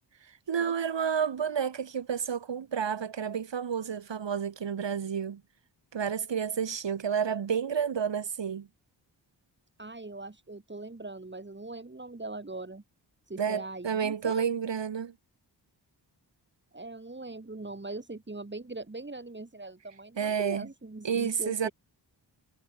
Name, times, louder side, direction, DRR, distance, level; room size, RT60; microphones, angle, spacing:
voice 1, 0.5-5.4 5.9-8.7 13.4-15.1 20.2-20.7 21.0-21.7, right 7 dB, 75° right, 3.2 m, -30 dB
voice 2, 9.8-12.8 13.3-14.5 16.7-21.7, right 2 dB, 25° right, 7.7 m, -41 dB
wide cardioid pair, 95°, 44 cm